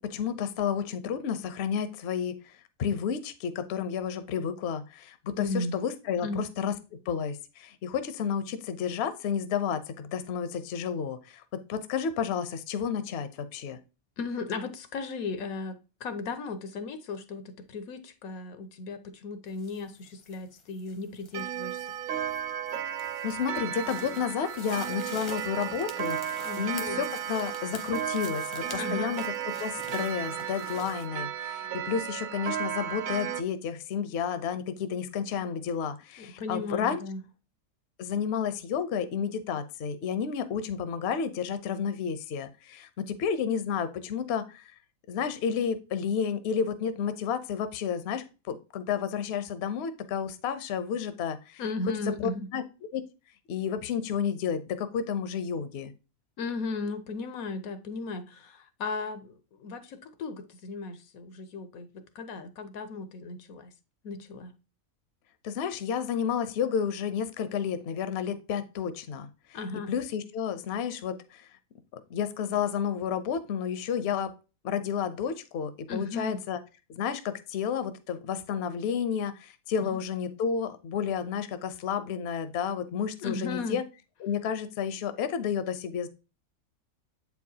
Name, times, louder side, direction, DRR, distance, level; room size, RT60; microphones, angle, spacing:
voice 1, 0.1-2.4 2.8-6.7 7.1-11.4 11.7-13.8 23.2-29.2 29.6-37.0 38.0-44.6 45.1-51.6 52.2-52.6 52.9-53.0 53.5-55.9 65.4-69.3 69.9-71.5 71.9-74.3 74.6-76.6 77.0-83.8 84.2-86.1, left 7 dB, 60° left, 0.8 m, -31 dB
voice 2, 5.4-5.8 6.2-6.5 14.2-21.9 26.4-27.0 28.8-29.2 36.2-37.2 51.6-52.5 56.4-63.7 64.0-64.5 69.5-69.9 75.9-76.4 79.8-80.0 83.2-83.8, left 3 dB, 85° left, 1.2 m, -36 dB
sound 1, 19.5-31.1, left 3 dB, 30° left, 0.6 m, -48 dB
Clock, 21.3-33.4, right 10 dB, 80° right, 1.1 m, -34 dB
7.9 x 4.7 x 2.7 m
omnidirectional pair, 1.4 m